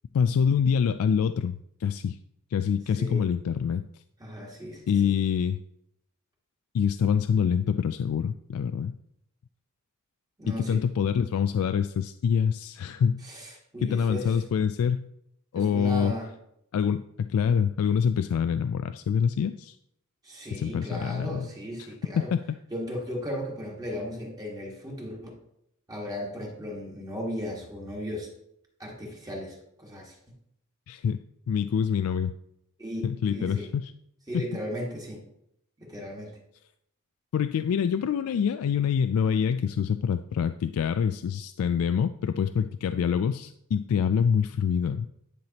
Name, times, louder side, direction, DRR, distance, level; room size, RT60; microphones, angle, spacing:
voice 1, 0.1-2.2 2.5-3.9 4.9-5.6 6.7-8.9 10.5-13.2 13.8-15.0 15.5-16.1 16.7-19.8 20.5-21.5 22.3-22.4 30.9-31.2 31.5-32.3 33.0-33.9 34.3-34.5 37.3-45.1, left 7 dB, 75° left, 11 dB, 0.3 m, -26 dB
voice 2, 4.2-5.1 10.4-10.8 13.2-14.3 15.5-16.3 20.2-22.3 22.7-25.2 25.9-28.3 28.8-30.1 32.8-33.0 33.3-33.7 34.3-35.2 35.8-36.4, equal, 15° right, -2 dB, 1.6 m, -36 dB
10.5 x 5.8 x 2.9 m, 0.77 s
head